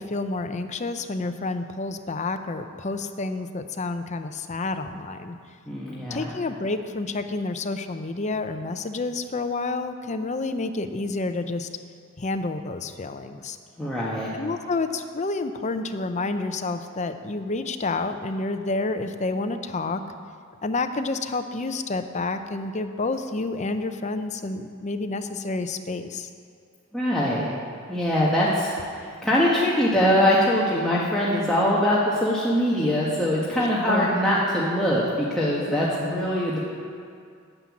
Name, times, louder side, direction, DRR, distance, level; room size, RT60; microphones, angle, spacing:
voice 1, 0.0-5.4 6.1-11.7 12.2-13.6 14.3-20.0 20.6-26.3 33.9-34.2 36.1-36.3, left 3 dB, 35° left, 8 dB, 0.6 m, -29 dB
voice 2, 5.7-6.2 13.8-14.3 26.9-27.5 27.9-28.7 29.0-36.6, equal, 5° left, -8 dB, 1.4 m, -22 dB
9.9 x 9.1 x 7.2 m, 2.2 s
head